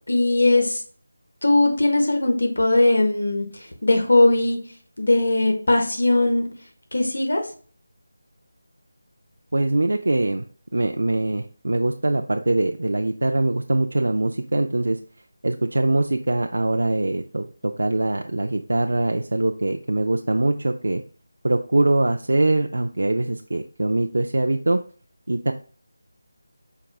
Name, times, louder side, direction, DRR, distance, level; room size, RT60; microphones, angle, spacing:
voice 1, 0.1-0.8 1.4-4.6 5.0-6.5 6.9-7.5, left 2 dB, 90° left, 3 dB, 1.2 m, -19 dB
voice 2, 9.5-10.4 10.7-15.0 15.4-21.0 21.4-24.8 25.3-25.5, right 2 dB, 75° right, 5 dB, 0.3 m, -22 dB
4.6 x 2.3 x 3.3 m, 0.43 s
figure-of-eight pair, 180°, 0 cm